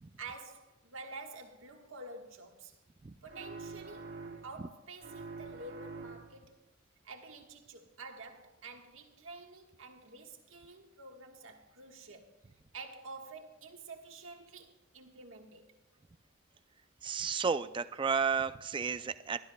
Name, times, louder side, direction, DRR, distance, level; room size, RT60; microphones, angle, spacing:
voice 1, 0.2-2.8 3.2-6.6 7.0-12.3 12.7-15.7, right 3 dB, 85° right, 1.5 m, -49 dB
sound 1, 3.3-4.7 5.0-6.5, right 4 dB, 60° right, 1.3 m, -46 dB
voice 2, 17.0-19.4, right 6 dB, 25° right, 0.4 m, -32 dB
23.0 x 12.5 x 2.3 m
head